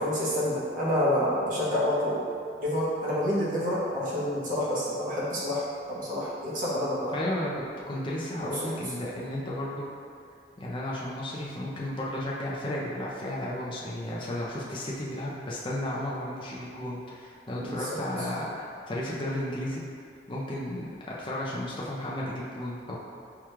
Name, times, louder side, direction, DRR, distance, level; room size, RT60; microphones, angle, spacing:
voice 1, 0.0-2.2 2.6-7.2 8.4-8.7 17.6-18.3, left 1 dB, 45° right, -8 dB, 0.9 m, -28 dB
voice 2, 7.1-9.8 10.6-19.8 20.3-23.0, left 1 dB, 25° left, -5 dB, 0.4 m, -33 dB
4.7 x 2.3 x 3.0 m, 2.3 s
head